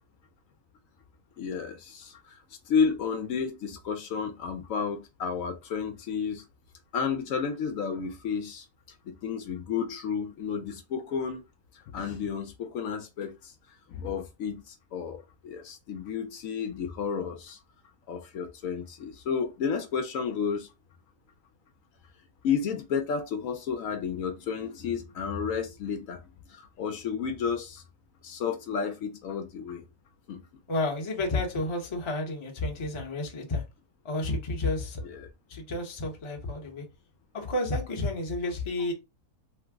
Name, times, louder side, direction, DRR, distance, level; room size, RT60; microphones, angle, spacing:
voice 1, 1.4-2.4 2.7-6.4 6.9-8.7 9.1-11.4 11.9-13.5 13.9-17.6 18.1-20.7 22.4-26.2 26.5-27.8 28.2-29.8 30.3-30.4 35.0-35.3, left 6 dB, 70° left, 0.9 m, -31 dB
voice 2, 30.7-33.6 34.0-35.0 35.5-36.8 37.3-38.9, left 2 dB, 30° left, 0.6 m, -31 dB
3.1 x 2.0 x 3.4 m
omnidirectional pair, 1.6 m